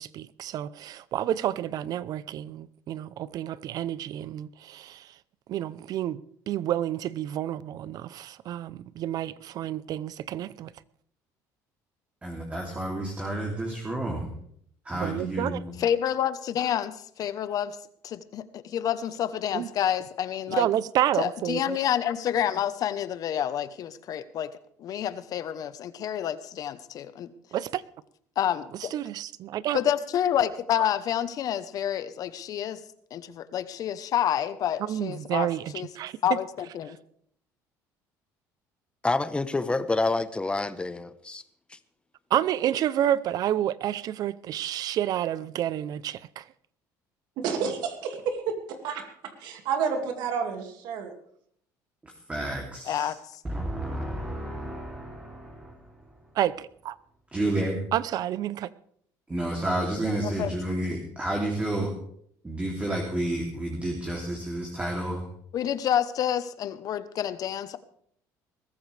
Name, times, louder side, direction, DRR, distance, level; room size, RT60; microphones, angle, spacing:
voice 1, 0.0-5.2 5.5-10.7 14.9-15.6 19.5-19.7 20.5-21.8 27.5-27.8 28.9-29.8 34.9-36.4 42.3-46.5 56.3-57.0 57.9-58.7, right 11 dB, 60° right, 0.7 m, -29 dB
voice 2, 12.2-14.4 14.8-15.7 52.0-53.1 53.4-56.0 57.3-57.8 59.3-61.9 62.4-65.2, right 1 dB, 15° right, 3.0 m, -31 dB
voice 3, 15.8-17.8 18.0-20.7 21.2-24.5 24.8-27.3 28.4-28.9 29.7-32.8 33.1-35.5 35.7-35.9 36.2-37.0 52.9-53.1 60.2-60.5 65.5-67.8, left 10 dB, 55° left, 1.0 m, -28 dB
voice 4, 39.0-41.4 41.7-41.8, left 3 dB, 15° left, 1.1 m, -27 dB
voice 5, 47.4-51.1, right 6 dB, 75° right, 2.4 m, -30 dB
21.0 x 14.0 x 3.4 m
cardioid pair, 105°, 7 cm